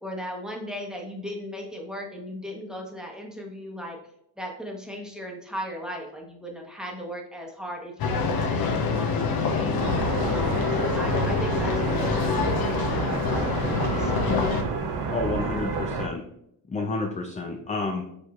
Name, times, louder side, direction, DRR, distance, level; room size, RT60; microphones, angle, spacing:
voice 1, 0.0-4.0 4.4-9.8 10.3-14.2, equal, ahead, -1 dB, 1.1 m, -37 dB
sound 1, 8.0-14.6, left 4 dB, 60° left, 0.9 m, -26 dB
sound 2, 9.8-16.1, right 4 dB, 85° right, 0.8 m, -30 dB
voice 2, 15.1-16.3 16.7-18.0, left 3 dB, 20° left, 2 dB, 0.5 m, -30 dB
5.0 x 4.4 x 2.4 m, 0.74 s
cardioid pair, 100°, 40 cm